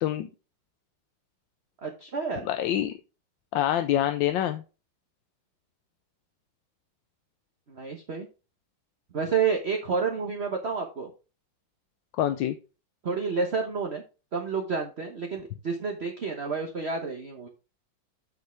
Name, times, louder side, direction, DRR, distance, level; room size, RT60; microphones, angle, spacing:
voice 1, 1.8-2.5 7.7-8.3 9.1-11.1 13.0-14.0 14.3-17.5, right 5 dB, 40° right, 2 dB, 1.2 m, -29 dB
voice 2, 2.4-2.9 3.5-4.6 12.2-12.6, left 12 dB, 85° left, 9 dB, 1.4 m, -26 dB
8.4 x 6.9 x 3.1 m, 0.31 s
omnidirectional pair, 2.0 m